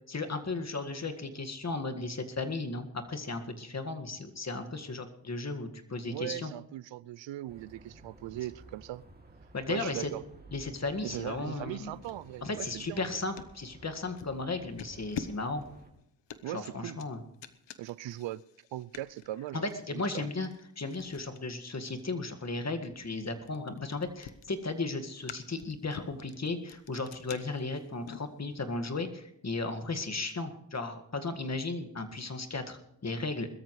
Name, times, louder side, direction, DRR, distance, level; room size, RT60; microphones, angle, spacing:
voice 1, 0.1-6.5 9.5-10.1 10.5-11.9 12.4-15.6 16.4-17.2 19.5-20.5 20.8-33.5, left 3 dB, 35° left, 1.8 m, -35 dB
voice 2, 6.1-9.0 9.7-10.2 11.0-13.2 16.4-17.0 17.8-18.4 18.7-20.3, right 14 dB, 85° right, 0.5 m, -39 dB
sound 1, 7.5-15.9, right 2 dB, 20° right, 2.7 m, -54 dB
sound 2, 12.0-13.6 14.2-14.4 14.8-28.8, left 8 dB, 75° left, 1.0 m, -47 dB
21.5 x 13.5 x 3.2 m
cardioid pair, 60°, 43 cm